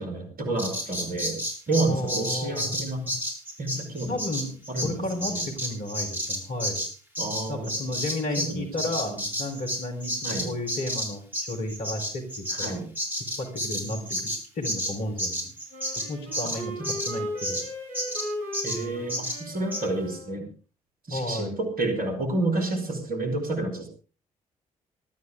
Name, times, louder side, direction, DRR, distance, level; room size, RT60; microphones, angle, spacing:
voice 1, 0.0-1.4 1.7-3.2 3.6-4.2 4.7-5.5 7.2-7.8 8.4-8.7 9.0-9.2 10.2-10.5 12.5-12.9 13.8-14.2 16.8-16.9 18.6-20.5 21.1-23.9, right 2 dB, 55° right, 7 dB, 4.7 m, -30 dB
Bird vocalization bird call bird song, 0.6-8.5 8.8-17.7 17.9-18.3 18.5-18.8 19.1-19.4 19.7-19.8, equal, 10° right, 7.2 m, -31 dB
voice 2, 1.9-2.7 4.1-6.8 7.5-9.1 9.4-12.8 13.4-15.5 16.1-16.7 17.1-17.6 21.1-21.6, left 1 dB, 55° left, 3 dB, 4.1 m, -33 dB
Wind instrument woodwind instrument, 15.7-20.4, equal, 90° left, 6.6 m, -36 dB
20.0 x 13.0 x 3.7 m, 0.36 s
figure-of-eight pair, 40°, 18 cm